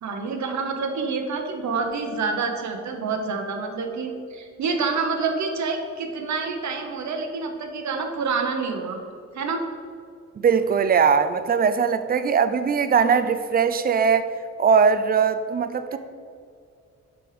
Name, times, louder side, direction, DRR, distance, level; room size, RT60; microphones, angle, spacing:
voice 1, 0.0-9.0 9.3-9.6 15.9-16.0, right 4 dB, 70° right, 4 dB, 1.0 m, -27 dB
voice 2, 10.4-14.3 14.6-16.0, right 6 dB, 30° right, 11 dB, 0.4 m, -20 dB
5.9 x 5.4 x 5.0 m, 2.3 s
cardioid pair, 100°, 30 cm